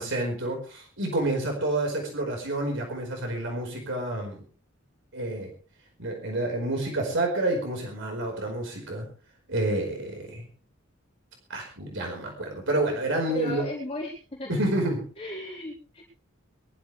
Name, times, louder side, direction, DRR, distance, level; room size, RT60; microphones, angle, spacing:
voice 1, 0.0-4.4 5.1-5.5 6.0-9.0 9.5-10.4 11.5-13.7 14.5-15.0, right 1 dB, 65° right, 1 dB, 5.0 m, -29 dB
voice 2, 13.3-14.6 15.2-16.0, left 2 dB, 30° left, -5 dB, 4.5 m, -35 dB
23.0 x 14.0 x 3.5 m, 0.38 s
head